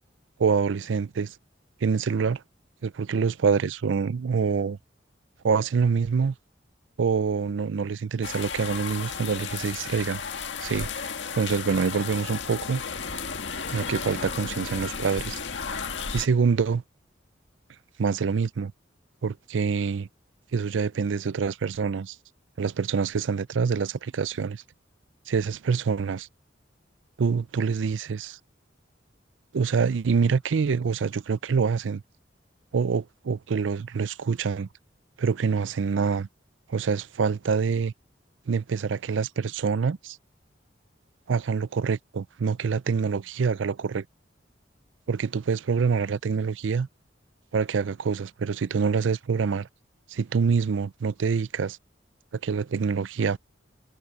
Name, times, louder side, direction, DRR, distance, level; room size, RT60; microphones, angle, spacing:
voice 1, 0.4-1.3 1.8-2.4 2.8-4.8 5.4-6.3 7.0-10.2 10.6-12.8 13.7-15.4 16.1-16.8 18.0-18.7 19.2-20.1 20.5-22.2 22.6-24.6 25.3-26.3 27.2-28.4 29.5-32.0 32.7-34.7 35.2-36.3 36.7-37.9 38.5-40.2 41.3-44.1 45.1-46.9 47.5-49.7 50.1-51.8 52.3-53.4, right 5 dB, 85° right, 0.5 m, -26 dB
sound 1, 8.2-16.3, left 5 dB, 75° left, 1.7 m, -34 dB
head